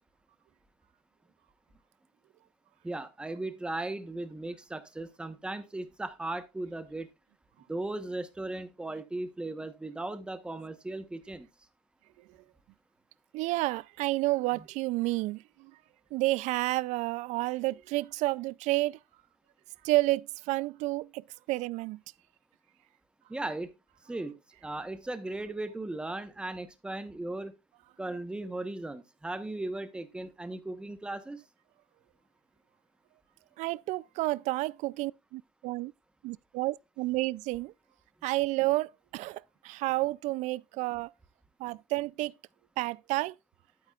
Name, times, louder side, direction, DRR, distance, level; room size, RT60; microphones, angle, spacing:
voice 1, 2.8-7.1 7.7-11.5 23.3-23.7 24.1-27.5 28.0-31.4, right 2 dB, 5° right, 1.1 m, -37 dB
voice 2, 13.3-15.7 16.1-19.0 19.8-22.0 33.6-35.9 36.2-37.7 38.2-41.1 41.6-42.3 42.8-43.3, right 19 dB, 65° right, 0.4 m, -30 dB
11.5 x 9.2 x 2.4 m
cardioid pair, 155°, 13 cm